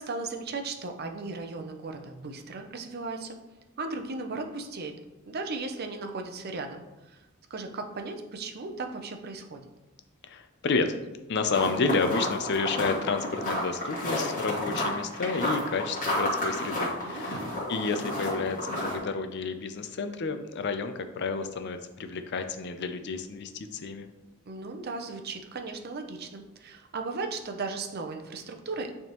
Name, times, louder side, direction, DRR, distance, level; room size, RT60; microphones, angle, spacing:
voice 1, 0.0-3.4 3.8-5.0 5.3-7.2 7.5-9.7 17.0-17.6 24.5-28.9, right 3 dB, 50° right, 5 dB, 0.6 m, -36 dB
voice 2, 10.3-10.9 11.3-17.4 17.7-24.1, left 4 dB, 55° left, 9 dB, 0.5 m, -30 dB
sound 1, 11.5-19.0, left 1 dB, 40° left, 2.0 m, -31 dB
9.0 x 3.5 x 3.0 m, 1.1 s
head